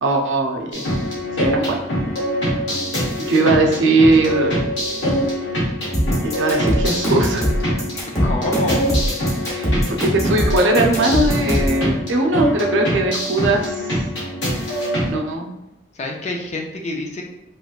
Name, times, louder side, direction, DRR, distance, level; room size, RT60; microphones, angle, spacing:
voice 1, 0.0-0.8 1.4-1.8 3.3-4.5 6.2-7.5 9.5-13.7 15.1-15.5, right 2 dB, 80° right, 2 dB, 0.5 m, -19 dB
sound 1, 0.7-15.1, equal, 75° left, 1.1 m, -23 dB
sound 2, 0.7-7.8, right 1 dB, 10° right, 0.8 m, -40 dB
sound 3, 5.9-11.8, equal, 15° left, 0.8 m, -21 dB
voice 2, 7.9-9.0 15.9-17.2, left 2 dB, 40° left, 2 dB, 0.4 m, -28 dB
3.0 x 3.0 x 2.4 m, 0.92 s
head